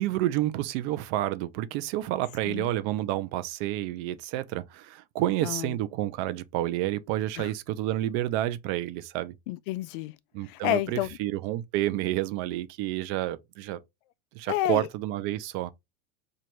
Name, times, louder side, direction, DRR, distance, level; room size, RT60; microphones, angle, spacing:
voice 1, 0.0-9.3 10.3-13.8 14.3-15.7, right 14 dB, 50° right, 0.6 m, -29 dB
voice 2, 5.4-5.7 7.4-7.5 9.5-10.1 10.5-11.2 14.5-14.9, left 15 dB, 60° left, 0.4 m, -30 dB
4.4 x 2.5 x 3.1 m
supercardioid pair, 120°, 30 cm